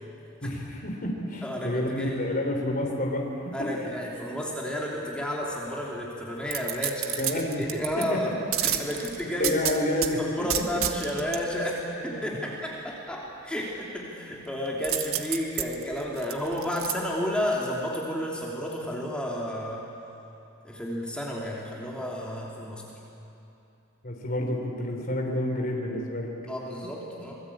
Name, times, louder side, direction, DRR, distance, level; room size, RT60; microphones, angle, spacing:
voice 1, 0.4-3.5 7.2-7.6 8.0-8.1 8.6-8.8 9.4-10.2 12.1-12.3 24.0-26.3, left 1 dB, 45° left, 1 dB, 3.6 m, -29 dB
voice 2, 1.4-2.2 3.5-8.3 8.6-9.6 10.2-11.7 12.0-19.8 20.6-22.8 26.5-27.3, equal, 5° left, -4 dB, 3.1 m, -32 dB
sound 1, 6.5-8.0 8.5-10.1 10.5-11.4 14.8-16.9 17.4-17.5, right 10 dB, 90° right, 1.6 m, -29 dB
27.0 x 20.5 x 8.7 m, 2.9 s
head